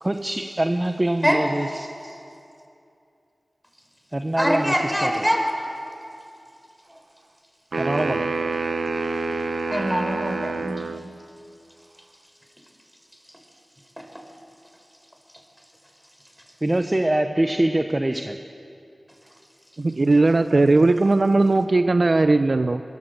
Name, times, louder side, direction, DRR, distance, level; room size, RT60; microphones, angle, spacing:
voice 1, 0.0-2.2 4.1-5.3 7.8-8.4 16.6-18.4, right 1 dB, 25° right, 6 dB, 1.0 m, -24 dB
voice 2, 4.4-5.4 9.7-10.8, equal, ahead, 3 dB, 4.8 m, -23 dB
sound 1, 7.7-11.1, right 4 dB, 75° right, 1.0 m, -27 dB
voice 3, 19.8-22.8, right 2 dB, 50° right, 9 dB, 0.6 m, -18 dB
24.0 x 22.5 x 8.0 m, 2.6 s
wide cardioid pair, 70°, 0 cm